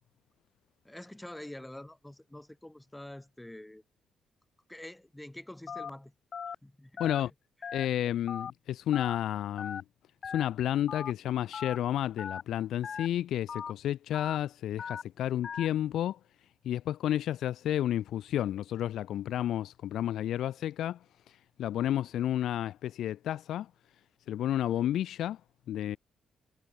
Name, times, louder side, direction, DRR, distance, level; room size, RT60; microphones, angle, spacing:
voice 1, 0.8-3.8 4.7-6.1 6.6-7.3 7.7-7.8, left 1 dB, 5° left, 7.3 m, -46 dB
Telephone, 5.7-5.9 6.3-6.5 7.0-7.2 7.6-7.9 8.3-8.5 8.9-9.2 9.6-9.8 10.2-10.5 10.9-11.1 11.5-11.8 12.2-12.4 12.8-13.1 13.5-13.7 14.1-14.4 14.8-15.0 15.4-15.7, left 7 dB, 40° left, 1.3 m, -38 dB
voice 2, 7.0-7.3 7.7-9.8 10.2-16.2 16.6-21.0 21.6-23.7 24.3-25.4 25.7-26.0, left 11 dB, 70° left, 2.3 m, -31 dB
cardioid pair, 140°, 0 cm